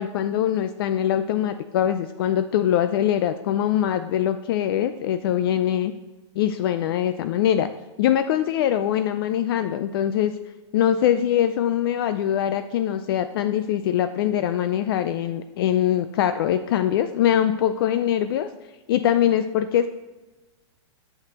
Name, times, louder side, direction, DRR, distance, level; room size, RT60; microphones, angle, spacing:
voice 1, 0.0-5.9 6.4-7.7 8.0-10.3 10.7-18.5 18.9-19.9, left 10 dB, 50° left, 11 dB, 0.4 m, -23 dB
8.5 x 8.0 x 3.0 m, 1.1 s
hypercardioid pair, 150°, 15 cm